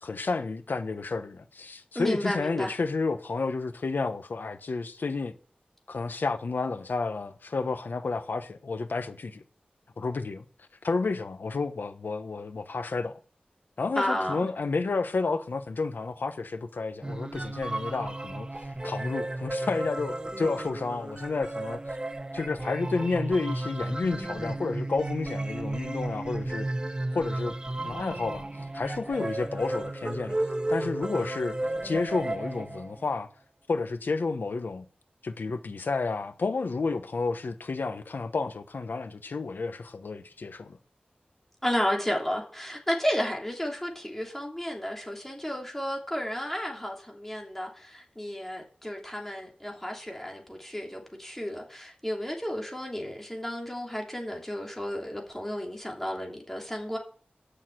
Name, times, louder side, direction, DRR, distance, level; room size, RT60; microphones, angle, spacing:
voice 1, 0.0-5.3 5.9-9.4 10.0-10.4 10.8-13.1 13.8-18.5 18.8-21.8 22.3-26.7 27.1-27.5 27.8-28.4 28.7-31.6 31.8-33.3 33.7-34.8 35.2-40.8, left 3 dB, 85° left, 1.0 m, -31 dB
voice 2, 1.9-2.7 14.0-14.5 41.6-57.0, equal, 10° left, 2.9 m, -32 dB
sound 1, 17.0-33.1, right 2 dB, 25° right, 0.8 m, -34 dB
10.0 x 6.5 x 7.7 m
wide cardioid pair, 90°, 3 cm